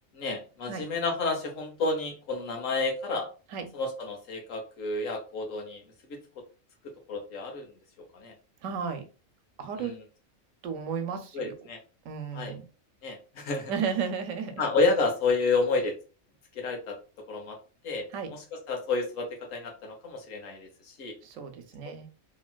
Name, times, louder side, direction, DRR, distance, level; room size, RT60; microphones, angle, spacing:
voice 1, 0.1-3.3 3.7-5.8 7.1-7.7 8.1-8.3 9.8-10.0 11.3-11.8 12.3-12.5 13.0-13.7 14.6-15.9 16.5-17.0 17.3-17.6 17.8-21.1, left 3 dB, 90° left, 3 dB, 1.3 m, -30 dB
voice 2, 8.6-9.0 9.6-9.9 10.6-11.5 12.0-12.6 13.7-14.6 18.1-18.3 21.2-22.1, right 6 dB, 85° right, 7 dB, 1.0 m, -33 dB
3.0 x 2.8 x 2.2 m, 0.34 s
omnidirectional pair, 1.3 m